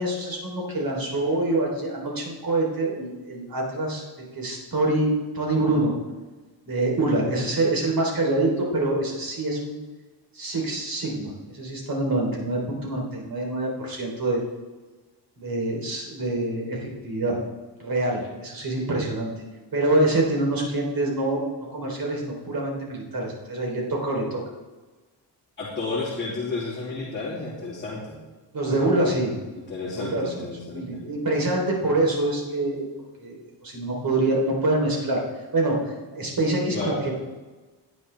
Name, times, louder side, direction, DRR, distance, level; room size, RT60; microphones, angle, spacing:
voice 1, 0.0-4.0 4.4-5.9 6.7-9.8 10.3-14.4 15.4-16.8 17.0-17.4 17.8-19.3 19.7-21.4 21.7-24.4 28.5-29.3 29.9-30.3 30.7-32.8 33.2-35.2 35.5-37.1, right 2 dB, 50° right, -1 dB, 3.6 m, -25 dB
voice 2, 25.6-28.2 29.5-31.0 36.7-37.0, left 3 dB, 25° left, -8 dB, 2.9 m, -32 dB
18.0 x 9.3 x 3.4 m, 1.3 s
cardioid pair, 120°, 43 cm